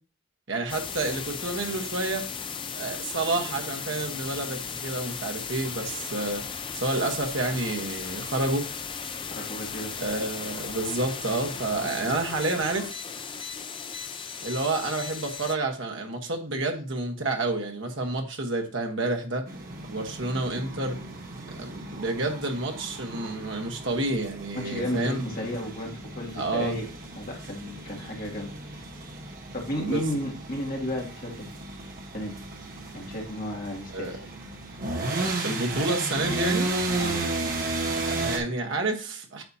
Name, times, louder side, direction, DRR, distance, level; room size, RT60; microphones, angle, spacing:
voice 1, 0.5-2.3 2.7-8.7 10.0-12.9 14.4-19.5 19.9-21.0 21.5-25.2 26.3-26.8 29.8-30.1 33.9-34.2 35.4-36.7 38.0-39.4, right 2 dB, 60° right, 3 dB, 1.3 m, -29 dB
sound 1, 0.7-15.6, left 6 dB, 25° left, 0.4 m, -36 dB
voice 2, 9.3-9.9 24.6-26.9 27.2-28.8 29.5-31.3 32.1-32.3 32.9-34.2 37.0-37.2, left 1 dB, 40° left, -1 dB, 2.2 m, -33 dB
sound 2, 19.5-38.4, right 2 dB, 40° right, 1.3 m, -34 dB
9.1 x 6.8 x 2.8 m, 0.37 s
head